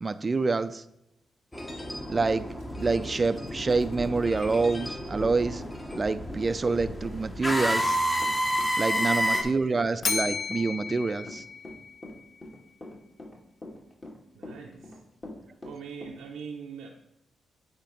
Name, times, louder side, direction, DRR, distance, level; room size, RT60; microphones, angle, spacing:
voice 1, 0.0-0.8 2.1-2.5 2.8-5.6 5.9-8.0 8.8-11.4, right 3 dB, 35° right, 12 dB, 0.4 m, -27 dB
sound 1, 1.5-9.4, equal, 15° left, 1.1 m, -30 dB
Run / Walk footsteps, 4.4-16.2, left 2 dB, 35° left, 2.1 m, -43 dB
voice 2, 9.1-10.0 14.3-15.0 15.6-16.9, right 6 dB, 85° right, -1 dB, 0.6 m, -43 dB
Bell, 10.0-12.2, left 5 dB, 55° left, 0.5 m, -33 dB
8.4 x 2.9 x 5.1 m, 0.83 s
supercardioid pair, 60°, 0 cm